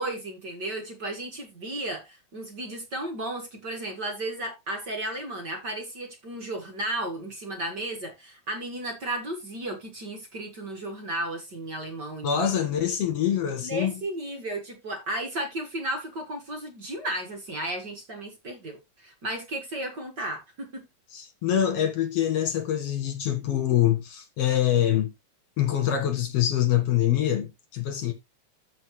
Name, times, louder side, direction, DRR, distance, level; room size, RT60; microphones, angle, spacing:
voice 1, 0.0-12.3 13.6-20.8, right 1 dB, 40° right, 2.1 m, -34 dB
voice 2, 12.2-13.9 21.1-25.1 25.6-28.1, left 10 dB, 60° left, 2.4 m, -25 dB
14.5 x 4.8 x 3.2 m
omnidirectional pair, 3.4 m